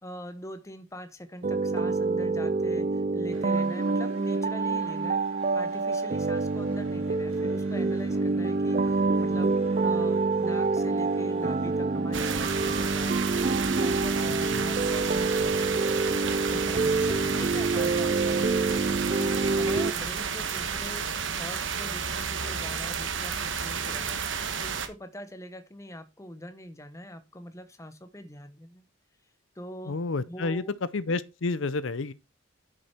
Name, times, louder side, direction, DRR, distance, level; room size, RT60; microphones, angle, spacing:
voice 1, 0.0-5.2 5.5-15.8 16.5-24.2 24.6-28.8 29.6-30.0 30.3-30.8, equal, 15° left, 0.9 m, -43 dB
sound 1, 1.4-19.9, right 3 dB, 40° right, 0.5 m, -27 dB
sound 2, 3.3-18.4, right 3 dB, 90° right, 2.7 m, -52 dB
sound 3, 12.1-24.9, right 6 dB, 65° right, 1.3 m, -32 dB
voice 2, 29.9-30.6 30.9-32.1, left 3 dB, 65° left, 0.6 m, -30 dB
9.8 x 6.5 x 4.5 m
head